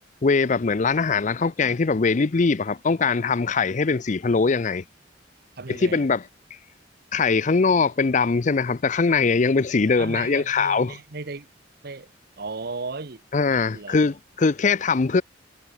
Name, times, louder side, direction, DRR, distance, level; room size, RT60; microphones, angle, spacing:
voice 1, 0.2-4.8 5.7-6.2 7.1-11.0 13.3-15.2, left 4 dB, 40° left, 0.5 m, -21 dB
voice 2, 5.6-6.1 10.0-11.5 11.8-12.1 12.4-13.2 13.7-14.0, right 3 dB, 60° right, 1.0 m, -35 dB
head